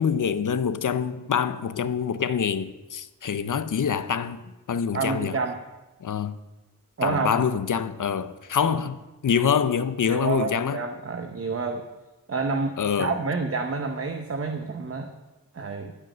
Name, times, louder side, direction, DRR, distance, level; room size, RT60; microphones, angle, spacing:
voice 1, 0.0-5.4 6.0-6.4 7.0-9.0 9.2-10.8 12.8-13.1, left 7 dB, 65° left, 0.6 m, -25 dB
voice 2, 4.9-5.6 7.0-7.3 8.6-8.8 10.1-11.8 12.3-15.1 15.5-15.9, right 4 dB, 40° right, 0.8 m, -29 dB
13.0 x 5.2 x 6.2 m
wide cardioid pair, 75°, 34 cm